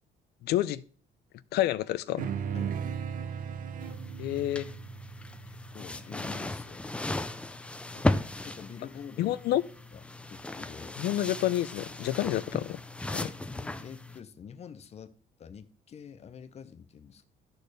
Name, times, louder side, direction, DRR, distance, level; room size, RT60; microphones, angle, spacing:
voice 1, 0.4-0.8 1.5-2.3 4.2-4.7 9.2-9.6 11.0-12.8 13.1-13.2, left 14 dB, 75° left, 0.5 m, -29 dB
sound 1, 2.2-6.9, right 7 dB, 55° right, 0.6 m, -37 dB
sound 2, 3.8-14.2, left 2 dB, 5° left, 0.4 m, -36 dB
voice 2, 5.5-6.9 8.4-9.4 9.9-10.0 10.3-11.0 13.2-15.1 15.4-17.3, left 7 dB, 40° left, 0.7 m, -46 dB
12.0 x 4.4 x 3.3 m
cardioid pair, 110°, 17 cm